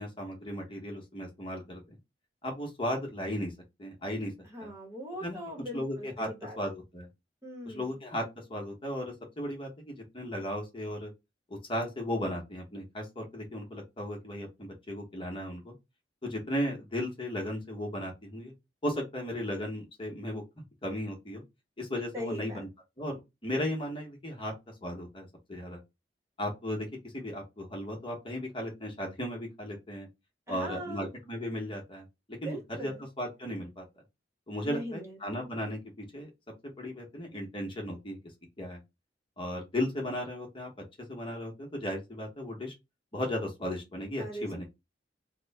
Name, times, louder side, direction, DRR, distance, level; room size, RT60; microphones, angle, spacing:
voice 1, 0.0-2.0 2.4-3.5 3.8-4.3 4.6-4.7 5.2-5.4 5.7-6.3 6.6-7.1 7.6-8.2 8.5-11.1 11.5-15.7 16.2-18.5 18.8-20.4 20.8-21.4 21.8-22.7 23.0-24.5 24.8-25.8 26.4-30.1 30.5-33.8 34.5-36.3 36.8-38.2 38.6-38.8 39.4-40.7 41.1-42.7 43.1-44.6, left 1 dB, 30° left, 1.1 m, -36 dB
voice 2, 4.5-6.6 7.4-7.9 22.1-22.6 30.5-31.1 32.4-33.0 34.7-35.2 44.2-44.5, equal, 15° right, 1.1 m, -40 dB
2.9 x 2.2 x 4.0 m
head